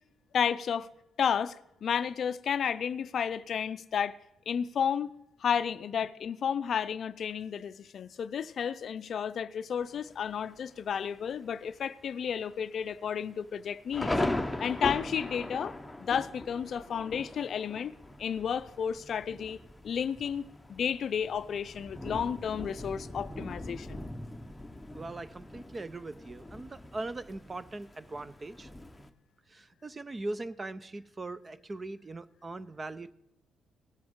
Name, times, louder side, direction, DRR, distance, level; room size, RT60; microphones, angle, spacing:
voice 1, 0.3-0.9 1.2-1.6 1.8-4.2 4.5-5.1 5.4-14.1 14.6-15.7 16.0-17.9 18.2-19.6 19.8-24.0, left 7 dB, 60° left, 0.4 m, -32 dB
Thunder, 9.8-10.3 10.9-11.0 11.3-11.7 12.0-12.1 12.8-29.1, left 2 dB, 10° left, 0.8 m, -39 dB
voice 2, 24.9-28.7 29.5-33.1, right 2 dB, 25° right, 0.5 m, -40 dB
18.5 x 7.8 x 3.7 m
cardioid pair, 90°, 0 cm